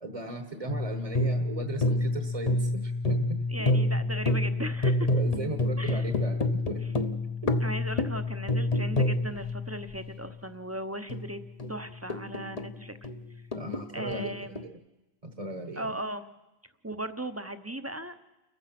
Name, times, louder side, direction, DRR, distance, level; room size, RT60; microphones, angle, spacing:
voice 1, 0.0-3.4 5.1-6.8 7.4-7.5 13.5-14.3 14.6-14.8 15.2-16.0, right 2 dB, 35° right, 6 dB, 1.3 m, -37 dB
sound 1, 0.7-10.3 11.1-12.8 13.0-14.6, left 2 dB, 40° left, 1.0 m, -28 dB
voice 2, 3.5-5.1 5.8-6.1 7.6-11.4 11.7-13.0 13.9-14.6 15.8-16.2 16.8-18.1, right 1 dB, 15° right, 9 dB, 0.9 m, -37 dB
29.5 x 15.0 x 6.0 m, 1.0 s
omnidirectional pair, 1.1 m